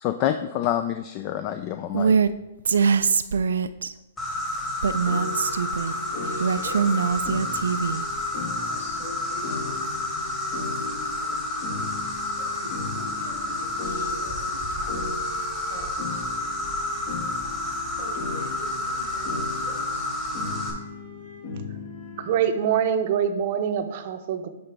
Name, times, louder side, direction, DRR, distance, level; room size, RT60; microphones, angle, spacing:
voice 1, 0.0-2.2, left 11 dB, 35° left, 8 dB, 0.3 m, -27 dB
Female speech woman speaking, 1.9-2.3 2.7-3.9 4.8-5.9 6.4-8.0, right 6 dB, 85° right, 0.3 m, -22 dB
Insect, 4.2-20.7, left 1 dB, 15° left, 1.5 m, -30 dB
sound 1, 5.1-22.5, left 3 dB, 50° left, 1.1 m, -37 dB
voice 2, 5.8-7.1 8.6-9.9 10.6-11.9 12.4-15.1 15.7-16.2 17.5-20.1, left 1 dB, 85° left, -1 dB, 2.1 m, -44 dB
voice 3, 22.2-24.5, right 8 dB, 50° right, 8 dB, 0.6 m, -24 dB
9.4 x 3.9 x 3.4 m, 0.97 s
hypercardioid pair, 140°, 0 cm